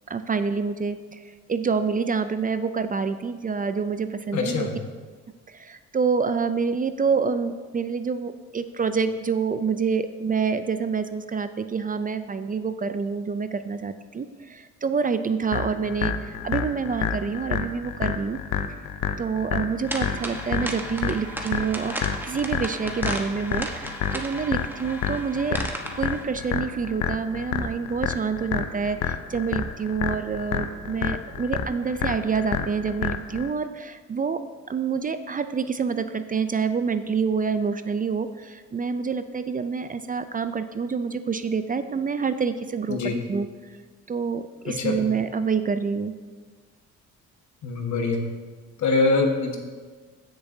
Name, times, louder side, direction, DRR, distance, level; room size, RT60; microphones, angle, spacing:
voice 1, 0.1-4.7 5.5-18.4 19.2-22.0 22.2-25.6 26.0-34.4 34.7-43.5 44.1-46.2, right 5 dB, 30° right, 11 dB, 0.4 m, -27 dB
voice 2, 4.3-4.7 42.9-43.2 44.7-45.0 47.6-48.2 48.8-49.6, left 3 dB, 70° left, 2 dB, 1.6 m, -23 dB
sound 1, 15.5-33.5, left 8 dB, 85° left, 0.7 m, -29 dB
sound 2, 19.9-26.2, right 1 dB, 5° right, 1.2 m, -35 dB
16.0 x 6.8 x 2.8 m, 1.4 s
cardioid pair, 90°, 30 cm